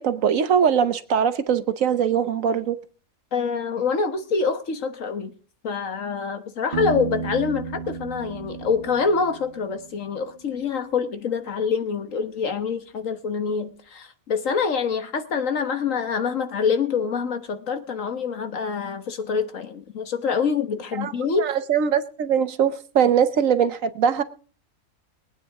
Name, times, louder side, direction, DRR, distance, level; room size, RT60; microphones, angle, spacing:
voice 1, 0.0-2.8 21.0-21.1 21.4-24.2, right 8 dB, 65° right, 1.2 m, -21 dB
voice 2, 3.3-5.3 5.6-21.5, left 5 dB, 65° left, 1.6 m, -26 dB
Piano, 6.7-10.4, right 5 dB, 40° right, 1.0 m, -33 dB
22.5 x 9.1 x 3.6 m
omnidirectional pair, 1.5 m